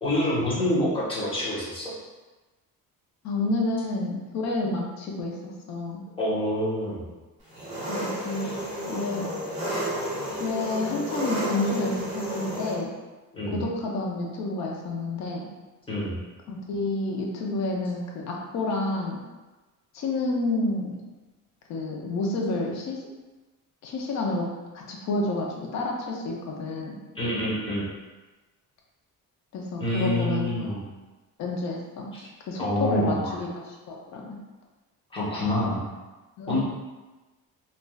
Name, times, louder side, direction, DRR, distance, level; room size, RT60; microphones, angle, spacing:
voice 1, 0.0-1.9 6.2-7.1 8.4-8.5 13.3-13.6 15.9-16.2 27.1-27.9 29.8-30.8 32.2-32.3 32.6-33.4 35.1-35.8 36.5-36.6, left 1 dB, 15° left, -8 dB, 0.8 m, -27 dB
voice 2, 3.2-6.0 7.9-8.5 8.9-9.3 10.4-12.9 13.5-15.5 16.5-19.2 19.9-21.0 21.7-23.0 23.8-24.4 24.7-27.0 29.5-30.8 31.4-32.1 32.4-33.5 33.9-34.4 36.4-36.6, left 2 dB, 55° left, -1 dB, 0.5 m, -29 dB
Engine, 7.5-12.8, right 1 dB, 20° right, 1.3 m, -31 dB
3.2 x 2.5 x 2.2 m, 1.2 s
cardioid pair, 165°, 34 cm